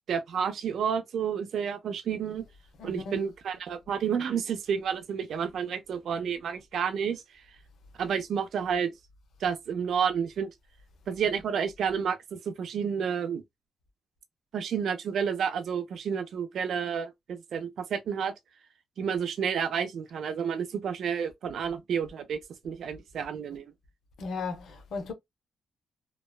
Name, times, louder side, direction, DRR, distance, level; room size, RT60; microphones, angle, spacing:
voice 1, 0.1-2.4 2.8-7.2 8.0-8.9 9.4-10.5 11.1-13.4 14.5-18.3 19.0-22.4 22.6-23.6, right 7 dB, 70° right, 0.5 m, -30 dB
voice 2, 2.8-3.2 24.2-25.1, left 4 dB, 75° left, 0.7 m, -36 dB
2.8 x 2.1 x 2.2 m
cardioid pair, 110°, 0 cm